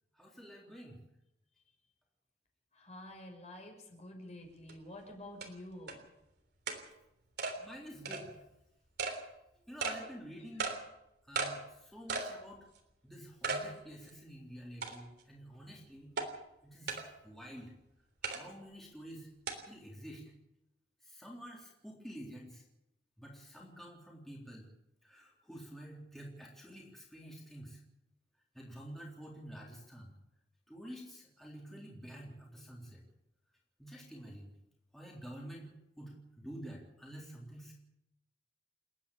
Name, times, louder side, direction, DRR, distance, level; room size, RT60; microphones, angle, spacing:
voice 1, 0.2-1.0 7.6-8.3 9.7-10.7 11.3-12.7 13.0-16.2 16.6-17.0 17.2-17.7 18.2-19.3 19.6-20.3 21.0-22.6 23.2-24.7 25.0-27.8 28.5-30.1 30.7-33.0 33.8-34.5 34.9-37.7, equal, ahead, -3 dB, 3.8 m, -49 dB
voice 2, 2.7-6.0, left 1 dB, 40° left, 2 dB, 5.9 m, -49 dB
sound 1, 4.7-4.8 5.4-5.5 5.9-6.0 6.7-6.8 7.4-7.6 8.1-8.2 9.0-9.2 9.8-10.0 10.6-10.8 11.4-11.5 12.1-12.3 12.8-12.9 13.4-13.6 14.1-14.2 14.8-15.2 16.2-16.3 16.9-17.0 18.2-18.4 19.5-19.6, right 4 dB, 70° right, 3.4 m, -35 dB
30.0 x 10.0 x 8.7 m, 0.88 s
head